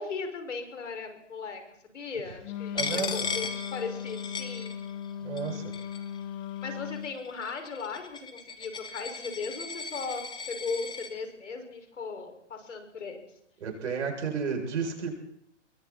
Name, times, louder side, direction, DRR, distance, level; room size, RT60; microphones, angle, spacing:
voice 1, 0.0-4.8 6.6-13.4, left 4 dB, 80° left, 5 dB, 6.2 m, -37 dB
Wind instrument woodwind instrument, 2.4-7.2, left 8 dB, 35° left, 1.1 m, -37 dB
voice 2, 2.7-3.3 5.2-5.6 13.6-15.1, right 6 dB, 75° right, 2 dB, 7.8 m, -32 dB
Coin (dropping), 2.8-5.1 5.4-6.2 6.9-11.1, left 4 dB, 10° left, 2.1 m, -37 dB
26.0 x 23.0 x 4.5 m, 0.72 s
hypercardioid pair, 120°, 36 cm